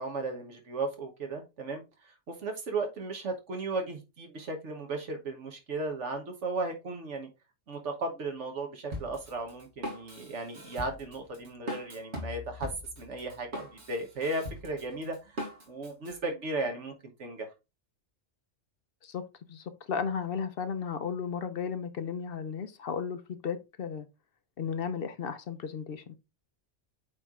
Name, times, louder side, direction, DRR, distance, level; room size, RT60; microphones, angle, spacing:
voice 1, 0.0-7.3 7.7-16.9 17.2-17.5, right 3 dB, 85° right, 1.5 m, -36 dB
Drum kit, 8.9-16.1, left 1 dB, 70° right, 1.9 m, -40 dB
voice 2, 19.0-24.1 24.6-26.2, left 6 dB, 60° left, 0.9 m, -35 dB
8.3 x 3.3 x 3.6 m
omnidirectional pair, 1.2 m